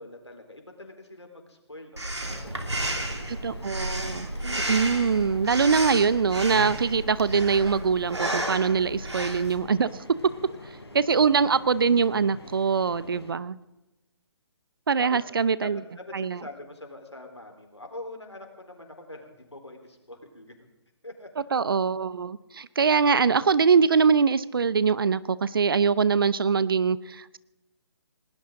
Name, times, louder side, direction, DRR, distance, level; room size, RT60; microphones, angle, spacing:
voice 1, 0.0-3.2 10.5-10.6 15.0-15.2 15.6-20.7 21.0-21.3, left 2 dB, 85° left, 3 dB, 4.1 m, -44 dB
Breathing, 2.0-9.6, right 1 dB, 85° right, 3.0 m, -32 dB
sound 1, 2.2-13.3, left 2 dB, 65° left, 3.7 m, -45 dB
voice 2, 3.3-9.9 10.9-13.6 14.9-15.8 16.1-16.4 21.5-27.4, right 5 dB, 55° right, 18 dB, 0.7 m, -23 dB
20.0 x 18.5 x 3.9 m, 0.99 s
figure-of-eight pair, 140°, 14 cm